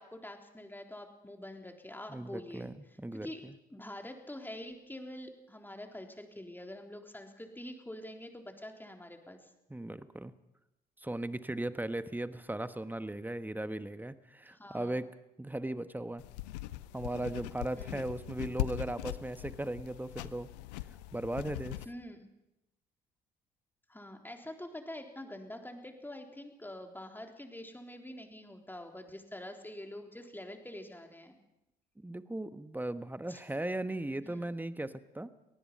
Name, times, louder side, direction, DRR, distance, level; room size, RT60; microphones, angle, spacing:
voice 1, 0.0-2.7 3.2-3.5 3.7-9.5 14.5-15.0 17.8-18.1 21.9-22.3 23.9-31.4 33.3-33.4 34.2-34.4, left 1 dB, 10° left, 3 dB, 3.7 m, -46 dB
voice 2, 2.1-3.5 9.7-10.3 11.0-15.1 15.4-16.2 16.9-20.5 21.1-21.8 32.0-35.3, right 1 dB, 10° right, 12 dB, 1.3 m, -37 dB
sound 1, 16.2-21.8, left 16 dB, 80° left, 0.7 m, -40 dB
25.0 x 18.5 x 5.6 m, 0.91 s
hypercardioid pair, 50°, 21 cm